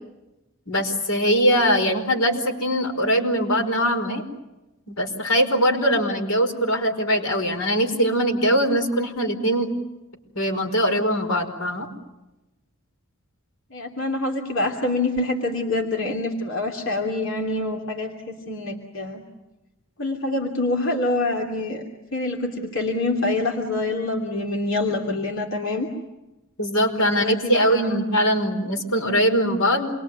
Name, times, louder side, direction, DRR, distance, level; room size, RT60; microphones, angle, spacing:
voice 1, 0.7-4.2 4.9-9.7 10.3-11.9 26.6-29.9, equal, 85° left, 5 dB, 5.0 m, -21 dB
voice 2, 13.7-19.2 20.0-21.8 22.1-25.9 27.0-27.9, left 2 dB, 60° left, 1 dB, 2.9 m, -26 dB
28.0 x 22.5 x 9.4 m, 1.0 s
head